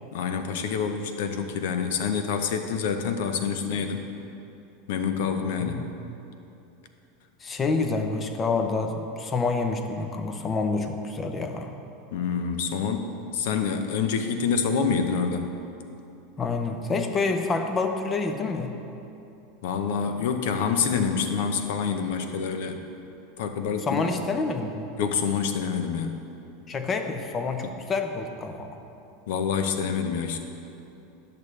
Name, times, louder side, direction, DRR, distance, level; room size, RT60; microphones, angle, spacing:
voice 1, 0.1-4.1 4.9-5.8 12.1-15.4 19.6-22.8 23.4-24.0 25.0-26.2 27.6-27.7 29.3-30.4, left 6 dB, 75° left, 7 dB, 0.7 m, -27 dB
voice 2, 7.4-11.7 16.4-18.7 23.8-24.9 26.7-28.7, left 3 dB, 25° left, 6 dB, 0.7 m, -28 dB
10.5 x 6.7 x 3.2 m, 2.8 s
supercardioid pair, 130°, 0 cm